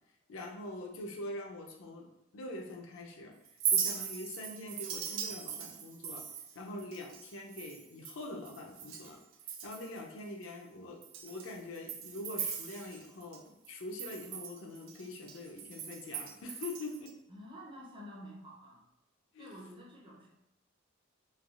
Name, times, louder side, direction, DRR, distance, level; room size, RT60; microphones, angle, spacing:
voice 1, 0.3-2.1 2.3-3.4 3.7-6.3 6.6-9.2 9.6-17.1 19.3-19.5, left 2 dB, 90° left, 1 dB, 0.5 m, -44 dB
Chink clink, 3.5-9.1 9.4-10.0 10.4-10.5 11.0-13.4 13.6-17.1, right 8 dB, 85° right, 0.4 m, -39 dB
voice 2, 6.6-7.0 17.3-18.8 19.4-20.3, equal, 25° right, -4 dB, 0.5 m, -49 dB
3.2 x 2.3 x 2.3 m, 0.87 s
head